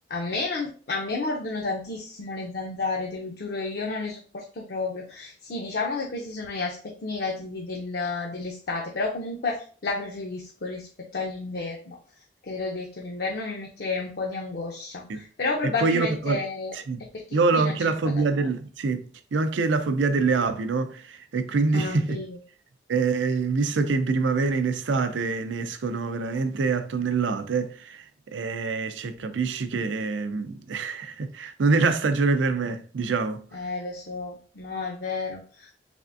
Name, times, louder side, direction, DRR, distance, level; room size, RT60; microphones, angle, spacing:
voice 1, 0.1-12.0 12.4-16.8 17.1-17.8 18.0-18.5 21.7-22.4 33.5-35.7, left 3 dB, 55° left, 0.5 m, -31 dB
voice 2, 15.6-16.4 16.7-17.0 17.3-22.2 22.9-33.4, right 4 dB, 85° right, 0.5 m, -25 dB
3.4 x 3.3 x 2.5 m
head